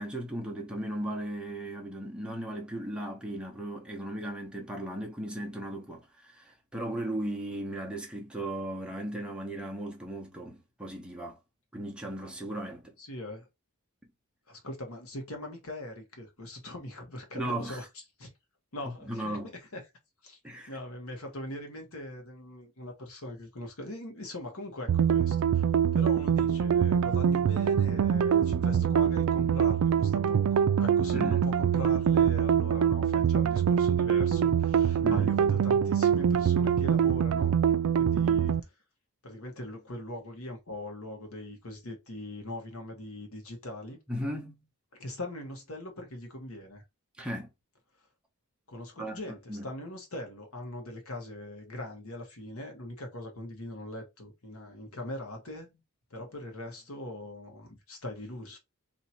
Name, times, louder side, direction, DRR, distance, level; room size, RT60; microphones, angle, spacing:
voice 1, 0.0-11.4 11.7-12.9 17.3-17.8 19.1-19.5 20.4-20.7 31.1-31.5 35.0-35.3 44.1-44.6 47.2-47.5 49.0-49.2 49.5-49.7, right 1 dB, 5° right, 0.8 m, -36 dB
voice 2, 13.0-13.5 14.5-17.8 18.2-18.3 18.7-19.8 20.2-20.4 20.7-25.6 25.9-37.6 37.9-38.7 39.2-44.0 45.0-46.8 48.7-55.8 56.1-58.6, left 1 dB, 70° left, 1.3 m, -41 dB
sound 1, 24.9-38.6, right 8 dB, 70° right, 0.3 m, -24 dB
2.9 x 2.7 x 4.2 m
head